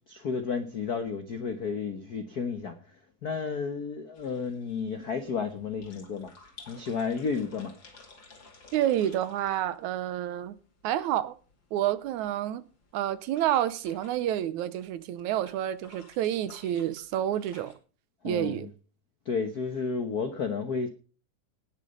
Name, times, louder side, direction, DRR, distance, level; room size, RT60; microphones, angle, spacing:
voice 1, 0.1-2.8 3.2-6.3 6.7-7.7 18.2-18.7 19.2-20.9, left 5 dB, 80° left, 0.8 m, -32 dB
sound 1, 4.1-17.8, left 3 dB, 40° left, 3.0 m, -55 dB
voice 2, 8.7-10.5 10.8-11.4 11.7-12.6 12.9-17.8 18.2-18.7, right 12 dB, 80° right, 2.2 m, -29 dB
18.5 x 6.7 x 5.3 m
omnidirectional pair, 3.5 m